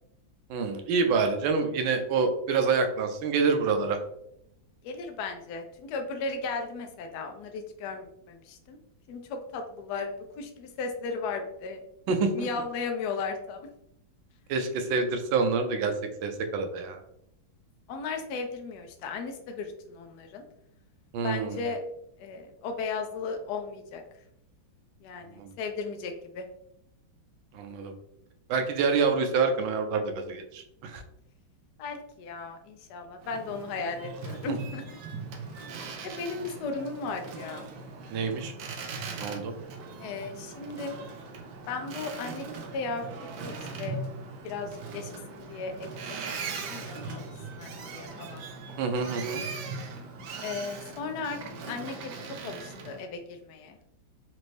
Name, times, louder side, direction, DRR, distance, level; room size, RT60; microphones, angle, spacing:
voice 1, 0.5-4.0 12.1-12.5 14.5-15.9 16.2-17.0 21.1-21.6 25.4-25.5 27.5-27.9 28.5-31.0 38.1-38.5 39.2-39.5 48.8-49.4, right 4 dB, 90° right, 6 dB, 1.4 m, -27 dB
voice 2, 4.8-8.8 9.1-11.8 12.3-13.7 17.9-20.4 21.2-21.8 22.2-24.0 25.0-26.5 31.8-35.0 36.0-37.6 40.0-41.0 41.7-44.0 44.4-46.1 46.4-48.8 50.4-51.4 51.7-53.8, left 4 dB, 75° left, 4 dB, 1.0 m, -36 dB
Boat Water vehicle, 33.2-53.0, right 4 dB, 75° right, 1.2 m, -40 dB
4.1 x 2.6 x 3.1 m, 0.76 s
omnidirectional pair, 2.1 m